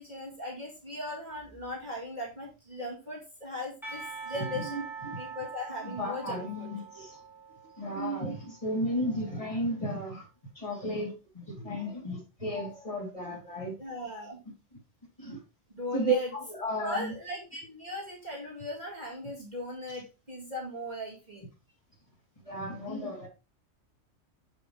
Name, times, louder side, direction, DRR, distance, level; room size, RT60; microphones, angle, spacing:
voice 1, 0.0-4.9 5.2-6.7 13.8-14.4 15.8-16.3 16.8-21.4, left 1 dB, 35° right, -4 dB, 2.2 m, -38 dB
Percussion / Church bell, 3.8-9.1, right 5 dB, ahead, 3.6 m, -44 dB
voice 2, 5.8-7.2 7.8-10.2 10.5-13.7 15.2-15.4 15.9-17.1 22.4-23.3, right 1 dB, 25° left, -4 dB, 3.4 m, -33 dB
7.6 x 5.9 x 3.4 m, 0.30 s
omnidirectional pair, 1.4 m